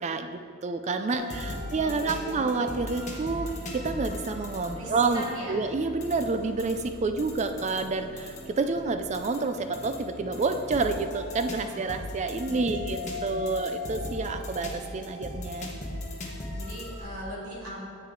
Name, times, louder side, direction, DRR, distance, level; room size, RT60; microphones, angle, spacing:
voice 1, 0.0-15.7, right 3 dB, 30° right, 8 dB, 0.4 m, -29 dB
sound 1, 1.1-17.0, left 1 dB, 35° left, 1.2 m, -38 dB
voice 2, 1.1-2.6 4.8-5.6 12.5-13.6 16.6-17.9, equal, 70° right, -6 dB, 2.4 m, -41 dB
9.4 x 7.6 x 3.8 m, 2.4 s
head